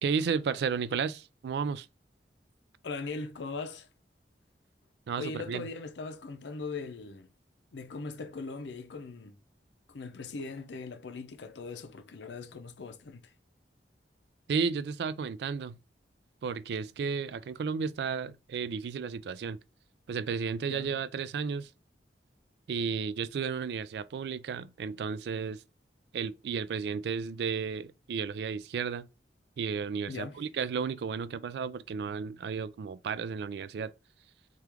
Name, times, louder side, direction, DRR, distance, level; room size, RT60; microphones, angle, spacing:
voice 1, 0.0-1.9 5.1-5.7 14.5-15.8 16.4-19.6 20.1-21.7 22.7-25.6 26.1-29.1 29.6-33.9, right 6 dB, 70° right, 0.3 m, -33 dB
voice 2, 2.8-3.9 5.2-7.3 7.7-9.3 9.9-13.3 20.7-20.9 30.1-30.4, left 4 dB, 85° left, 0.5 m, -40 dB
3.4 x 2.4 x 2.9 m
head